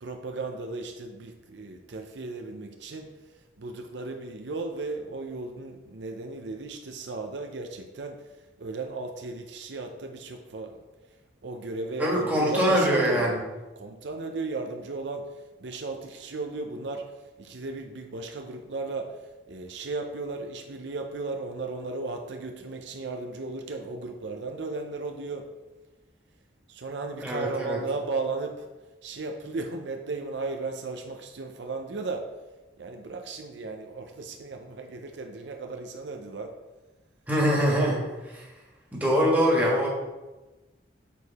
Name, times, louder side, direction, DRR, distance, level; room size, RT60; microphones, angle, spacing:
voice 1, 0.0-3.1 3.6-8.2 8.6-10.8 11.4-13.4 13.8-17.1 17.4-19.2 19.5-25.5 26.7-28.6 29.0-32.3 32.8-36.5, right 3 dB, 70° right, 4 dB, 0.6 m, -35 dB
voice 2, 12.0-13.4 27.2-27.8 37.3-38.0 38.3-38.4 38.9-39.9, equal, 10° right, -4 dB, 1.6 m, -23 dB
7.0 x 4.7 x 4.1 m, 1.1 s
head